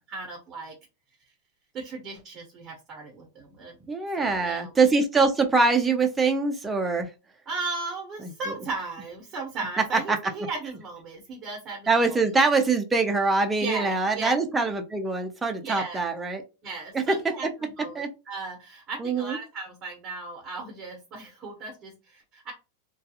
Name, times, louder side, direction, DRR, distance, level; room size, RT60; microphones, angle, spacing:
voice 1, 0.1-0.7 1.7-3.8 4.2-4.7 7.5-12.3 13.6-14.3 15.6-16.0 16.6-22.5, right 3 dB, 25° right, 0 dB, 0.8 m, -36 dB
voice 2, 3.9-7.1 8.2-8.3 9.9-10.2 11.9-16.4 16.9-17.3 17.9-18.1 19.0-19.4, right 3 dB, 10° right, 5 dB, 0.4 m, -23 dB
2.3 x 2.3 x 2.7 m, 0.29 s
supercardioid pair, 150°, 0 cm